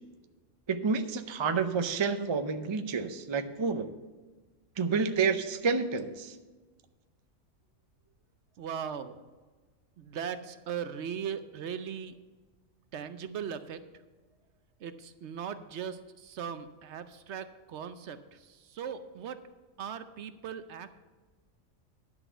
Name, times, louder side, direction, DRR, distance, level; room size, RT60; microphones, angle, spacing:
voice 1, 0.7-3.9 4.8-6.3, right 5 dB, 45° right, 8 dB, 0.3 m, -29 dB
voice 2, 8.6-9.2 10.0-12.1 12.9-13.8 14.8-19.4 19.8-21.0, right 8 dB, 65° right, 11 dB, 0.9 m, -39 dB
10.5 x 6.1 x 6.8 m, 1.3 s
omnidirectional pair, 1.4 m